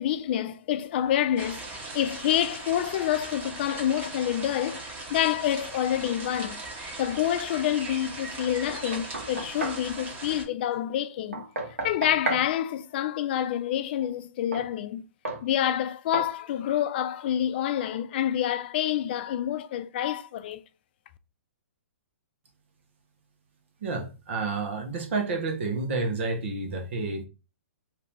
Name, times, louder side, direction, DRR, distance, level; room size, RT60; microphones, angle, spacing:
voice 1, 0.0-1.7 1.9-6.6 7.0-11.5 11.8-15.1 15.4-20.6, left 11 dB, 50° left, 0.4 m, -27 dB
sound 1, 1.4-10.4, right 2 dB, 25° right, 1.4 m, -39 dB
Knock, 8.7-9.9 11.3-12.5 14.5-14.7 15.3-15.5 16.1-16.4, right 3 dB, 85° right, 1.0 m, -33 dB
voice 2, 23.8-27.2, right 3 dB, 60° right, 1.2 m, -30 dB
2.8 x 2.8 x 3.5 m
hypercardioid pair, 130°, 7 cm